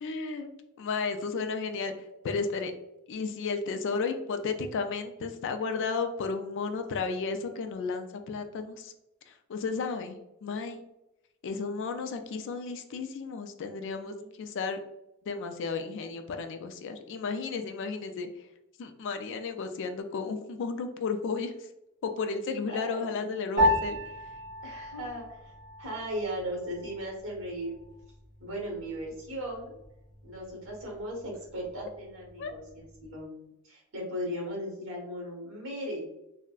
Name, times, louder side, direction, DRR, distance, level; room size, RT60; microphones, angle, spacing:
voice 1, 0.0-0.5 0.8-1.9 2.2-2.7 3.1-8.9 9.3-10.8 11.4-14.8 15.3-18.3 18.8-21.7 22.0-24.0 32.4-32.5, left 4 dB, 55° left, 7 dB, 0.3 m, -33 dB
voice 2, 13.8-14.3 22.7-23.1 24.6-25.5 25.8-27.8 28.4-29.7 30.2-36.1, equal, 60° right, -1 dB, 1.2 m, -37 dB
Piano, 23.6-33.2, left 1 dB, 35° right, 0.9 m, -34 dB
3.6 x 2.1 x 2.3 m, 0.90 s
head